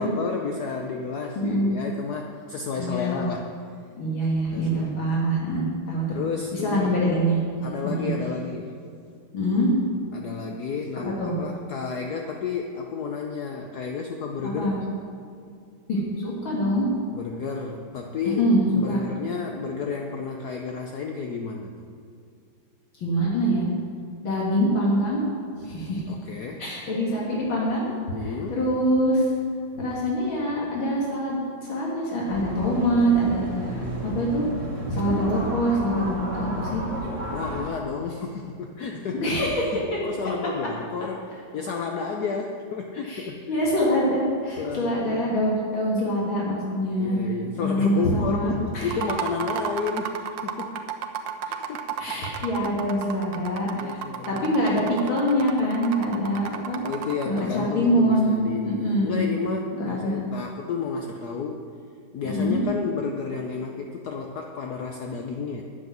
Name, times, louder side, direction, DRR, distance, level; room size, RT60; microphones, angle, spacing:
voice 1, 0.0-3.5 4.5-5.1 6.1-7.0 7.6-8.8 10.1-14.9 17.1-21.9 26.1-26.6 28.1-28.6 37.3-43.5 44.6-45.4 47.0-50.8 51.4-52.0 52.5-52.8 53.8-54.5 56.8-61.7 62.1-65.6, left 5 dB, 60° left, 2 dB, 1.2 m, -31 dB
voice 2, 1.4-1.7 2.8-3.3 3.9-6.2 6.5-7.4 8.0-8.1 9.3-9.7 11.2-11.3 14.4-14.8 15.9-16.9 18.4-19.0 23.0-23.6 24.2-25.2 25.6-26.0 26.6-27.9 28.2-29.3 29.8-33.7 34.0-34.5 34.9-36.8 39.1-39.7 43.0-47.2 47.6-48.9 52.0-54.0 54.3-56.8 57.3-58.3 58.6-59.3 59.7-60.2 62.2-62.6, equal, 75° left, -4 dB, 2.7 m, -24 dB
sound 1, 32.3-37.7, right 1 dB, 40° right, 2.1 m, -32 dB
sound 2, 48.8-57.4, right 8 dB, 70° right, 1.4 m, -33 dB
9.7 x 7.2 x 9.3 m, 2.4 s
omnidirectional pair, 2.1 m